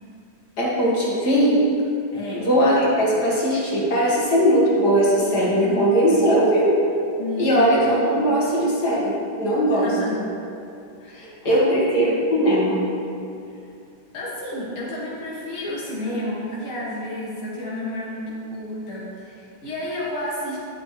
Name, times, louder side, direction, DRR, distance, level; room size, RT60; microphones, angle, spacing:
voice 1, 0.6-1.6 2.3-6.7 7.4-9.9 11.4-12.8, equal, 50° left, -6 dB, 2.5 m, -19 dB
voice 2, 2.1-2.5 4.6-6.4 7.2-8.2 9.7-10.1 11.0-12.2 13.5-13.6 14.1-20.6, left 1 dB, 85° left, -7 dB, 2.5 m, -32 dB
11.5 x 8.3 x 3.3 m, 2.7 s
omnidirectional pair, 2.2 m